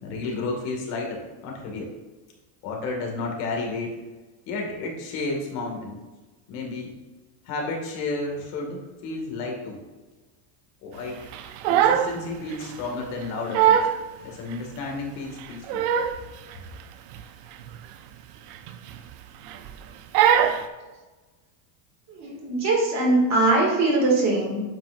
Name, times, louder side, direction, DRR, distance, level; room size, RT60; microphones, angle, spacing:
voice 1, 0.0-1.9 2.6-3.9 4.5-6.0 6.5-6.9 7.5-9.8 10.8-11.3 11.7-13.8 14.2-15.9, left 3 dB, 75° left, 0 dB, 2.2 m, -32 dB
Crying sobbing, 11.3-12.2 12.5-12.7 13.2-13.3 13.5-14.0 14.5-14.6 15.4-16.2 16.5-16.8 17.1-17.2 17.6-17.8 18.5-19.1 19.5-19.7 20.1-20.6, right 9 dB, 50° right, 0.6 m, -21 dB
voice 2, 22.2-24.6, right 2 dB, 35° right, -2 dB, 2.3 m, -21 dB
8.8 x 5.9 x 2.6 m, 1.2 s
cardioid pair, 155°, 49 cm